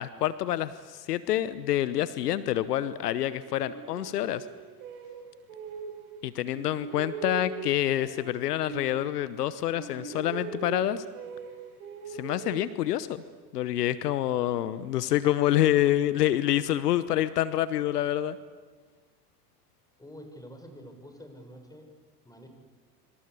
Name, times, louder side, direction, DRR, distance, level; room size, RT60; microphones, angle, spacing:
voice 1, 0.0-4.5 6.2-11.0 12.1-13.2 13.5-18.4, left 12 dB, 75° left, 16 dB, 1.1 m, -27 dB
sound 1, 3.5-6.2 6.5-9.5 9.7-13.3, right 5 dB, 65° right, 4.5 m, -41 dB
voice 2, 20.0-21.9 22.2-22.5, equal, 5° left, 5 dB, 6.6 m, -47 dB
26.0 x 26.0 x 8.4 m, 1.5 s
hypercardioid pair, 80°, 47 cm